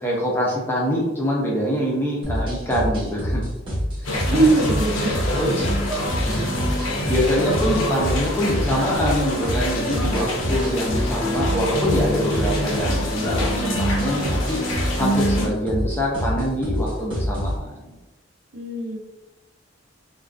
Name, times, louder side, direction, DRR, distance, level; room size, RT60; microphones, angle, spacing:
voice 1, 0.0-3.4 4.0-4.5 5.3-5.5 6.3-6.5 7.1-14.6 15.0-17.9, equal, 10° left, -4 dB, 0.4 m, -24 dB
sound 1, 2.2-17.6, equal, 25° right, 0.8 m, -27 dB
sound 2, 4.0-15.5, left 1 dB, 75° left, 0.6 m, -26 dB
voice 2, 4.2-5.3 18.5-19.0, right 3 dB, 75° right, 0 dB, 0.5 m, -21 dB
2.4 x 2.2 x 2.4 m, 1.0 s
head